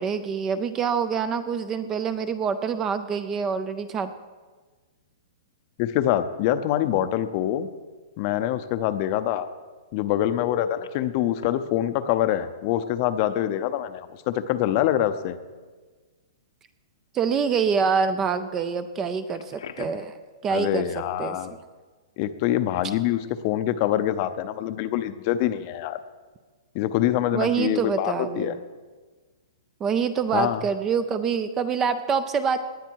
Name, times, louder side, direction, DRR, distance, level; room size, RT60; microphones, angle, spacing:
voice 1, 0.0-4.1 17.1-20.2 20.4-20.9 21.2-21.4 27.3-28.6 29.8-32.6, right 6 dB, 15° right, 11 dB, 0.4 m, -25 dB
voice 2, 5.8-7.7 8.2-9.5 9.9-15.4 20.5-21.6 22.2-26.0 26.7-28.5 30.3-30.6, left 12 dB, 30° left, 11 dB, 0.6 m, -25 dB
Telephone, 10.2-10.9 11.4-11.5 13.3-13.4 13.8-14.0 19.3-20.1 27.2-27.4, left 7 dB, 80° left, 1.1 m, -36 dB
18.5 x 9.6 x 4.6 m, 1.4 s
hypercardioid pair, 170°, 2 cm